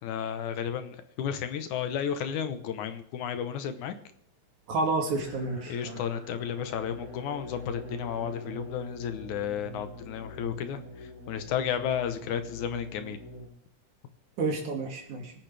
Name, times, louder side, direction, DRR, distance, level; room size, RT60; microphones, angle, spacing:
voice 1, 0.0-3.9 5.7-13.2, left 8 dB, 85° left, 9 dB, 2.5 m, -33 dB
voice 2, 4.7-6.0 14.4-15.3, right 3 dB, 80° right, 2 dB, 3.7 m, -30 dB
sound 1, 5.1-13.5, left 1 dB, 30° left, 6.0 m, -44 dB
23.5 x 9.0 x 3.4 m, 0.72 s
omnidirectional pair, 3.4 m